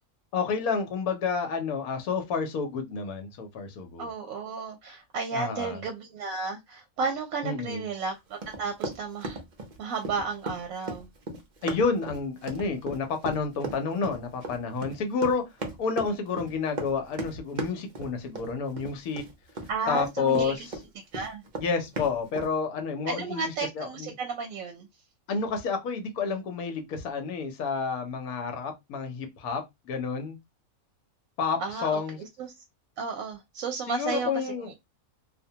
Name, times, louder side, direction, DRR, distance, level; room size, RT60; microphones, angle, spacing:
voice 1, 0.3-4.1 5.3-5.8 7.4-7.8 11.6-15.4 15.8-19.2 19.9-20.6 21.6-24.1 25.3-30.4 31.4-32.2 33.9-34.7, left 5 dB, 80° left, 1.1 m, -30 dB
voice 2, 4.0-9.4 9.8-11.1 19.7-20.7 21.1-21.4 23.1-24.9 31.6-32.5 33.0-34.5, right 4 dB, 70° right, 0.9 m, -33 dB
Run, 8.4-20.8 21.1-22.5, right 2 dB, 55° right, 0.5 m, -36 dB
2.5 x 2.1 x 2.7 m
omnidirectional pair, 1.5 m